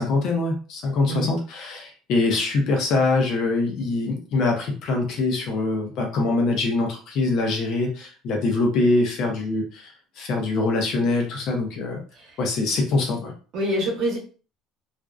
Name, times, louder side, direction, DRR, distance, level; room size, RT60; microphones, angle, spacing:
voice 1, 0.0-9.8 10.2-12.0 12.4-13.3, left 3 dB, 45° left, 2 dB, 0.6 m, -23 dB
voice 2, 13.5-14.2, equal, 45° right, -1 dB, 0.8 m, -26 dB
2.4 x 2.1 x 2.4 m, 0.37 s
cardioid pair, 175°, 0 cm